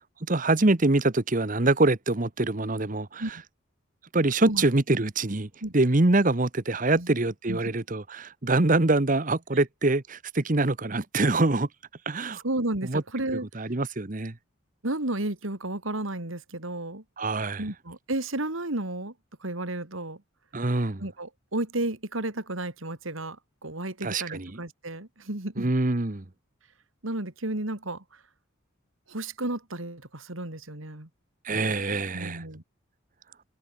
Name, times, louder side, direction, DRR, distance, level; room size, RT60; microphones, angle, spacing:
voice 1, 0.3-3.2 4.1-11.7 12.1-12.4 12.8-13.0 13.5-14.3 17.2-17.6 20.5-21.0 24.0-24.6 25.6-26.2 31.4-32.4, right 2 dB, 40° right, 1.1 m, -24 dB
voice 2, 12.3-13.7 14.8-17.0 17.6-19.1 19.4-20.2 21.0-25.7 27.0-28.2 29.1-31.1 32.1-32.6, right 2 dB, 80° right, 2.9 m, -32 dB
head